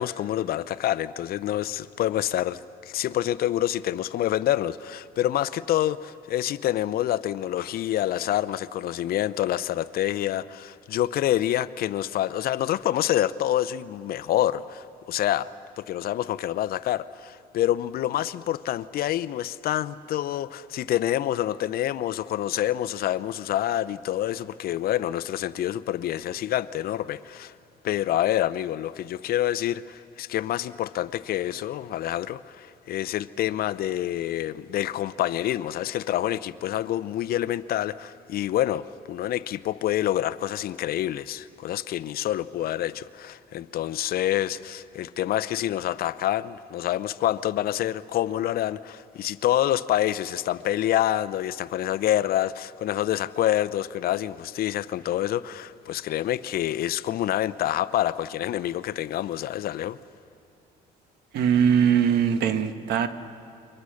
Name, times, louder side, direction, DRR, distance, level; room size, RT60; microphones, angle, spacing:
voice 1, 0.0-15.5 15.8-27.5 27.8-60.0, left 12 dB, 65° left, 0.7 m, -27 dB
voice 2, 61.3-63.1, right 8 dB, 75° right, 1.4 m, -21 dB
29.0 x 23.5 x 6.5 m
cardioid pair, 110°, 17 cm